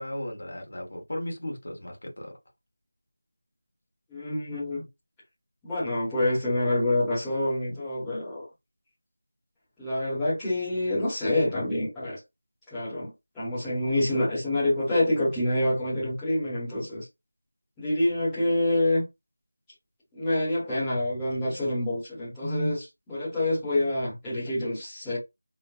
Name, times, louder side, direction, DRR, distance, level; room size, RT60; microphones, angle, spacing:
voice 1, 0.0-2.3, left 1 dB, 55° left, 1.1 m, -36 dB
voice 2, 4.1-4.8 5.6-8.4 9.8-12.2 12.7-17.0 17.8-19.0 20.1-25.2, left 1 dB, 5° left, 1.0 m, -27 dB
3.1 x 2.1 x 2.4 m
figure-of-eight pair, 180°, 0 cm